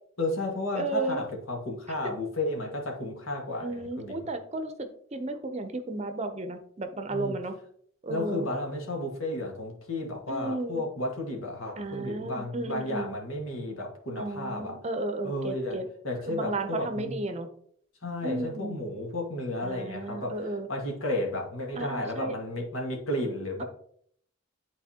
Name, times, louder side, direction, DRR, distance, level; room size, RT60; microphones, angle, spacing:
voice 1, 0.2-4.2 7.1-7.3 8.1-14.8 15.2-17.1 18.0-20.4 20.7-23.6, left 1 dB, 80° left, 0 dB, 1.7 m, -33 dB
voice 2, 0.7-1.2 2.0-2.1 3.6-7.6 8.0-8.5 10.3-10.8 11.8-13.2 14.2-15.9 16.3-17.5 18.2-18.8 19.6-20.7 21.8-22.3, right 2 dB, 30° right, 8 dB, 0.6 m, -33 dB
11.0 x 4.1 x 2.8 m, 0.64 s
head